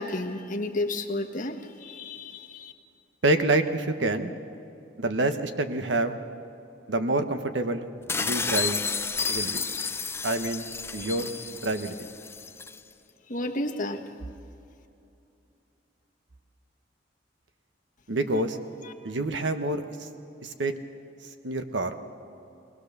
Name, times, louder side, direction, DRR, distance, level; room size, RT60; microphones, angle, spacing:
voice 1, 0.0-2.7 11.0-11.1 13.3-14.0 18.8-18.9, left 2 dB, 45° left, 2 dB, 1.4 m, -32 dB
voice 2, 3.2-4.3 5.0-6.2 6.9-7.9 8.2-8.8 9.3-9.6 10.2-10.7 10.9-11.3 11.6-12.1 18.1-18.6 19.0-20.1 20.4-20.7 21.4-21.9, right 2 dB, 85° right, 8 dB, 1.2 m, -27 dB
sound 1, 8.1-12.8, left 5 dB, 15° left, 0.5 m, -31 dB
21.0 x 20.0 x 6.8 m, 2.7 s
head